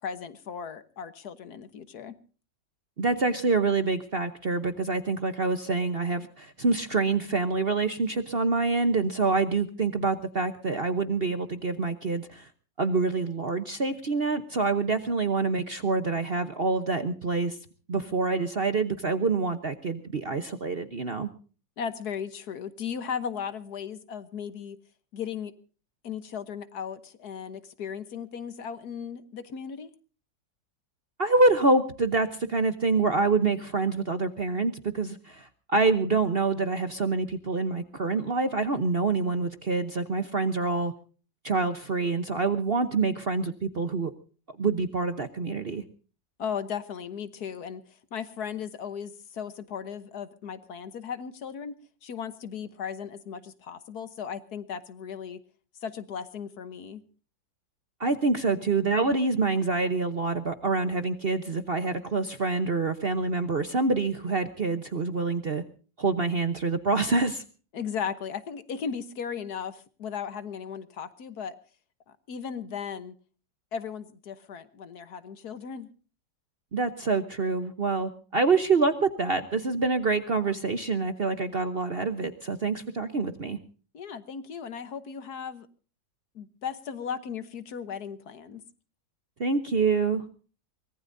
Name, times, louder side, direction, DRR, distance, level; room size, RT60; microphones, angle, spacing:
voice 1, 0.0-2.1 21.8-24.8 25.1-25.5 26.0-29.9 46.4-47.8 48.1-55.4 55.8-57.0 67.7-71.6 72.1-73.1 73.7-75.9 83.9-85.7 86.3-88.6, left 7 dB, 60° left, 13 dB, 1.5 m, -36 dB
voice 2, 3.0-12.5 12.8-17.6 17.9-21.3 31.2-40.9 41.4-44.1 44.6-45.8 58.0-65.6 66.0-67.4 76.7-83.6 89.4-90.2, right 3 dB, 40° right, 10 dB, 0.9 m, -26 dB
24.0 x 19.0 x 2.6 m, 0.38 s
omnidirectional pair, 2.0 m